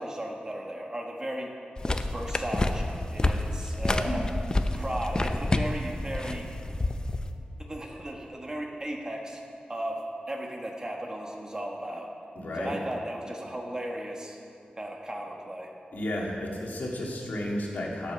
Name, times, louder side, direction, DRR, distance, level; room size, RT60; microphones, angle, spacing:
voice 1, 0.0-1.5 1.8-4.2 4.7-6.5 7.6-9.4 9.7-12.1 12.5-14.4 14.8-15.7, right 1 dB, 25° right, 1 dB, 1.3 m, -36 dB
sound 1, 1.8-7.3, left 2 dB, 25° left, 0.6 m, -29 dB
voice 2, 12.4-12.7 15.9-18.1, left 1 dB, 80° left, -2 dB, 2.0 m, -32 dB
12.5 x 7.2 x 5.8 m, 2.4 s
wide cardioid pair, 110°, 3 cm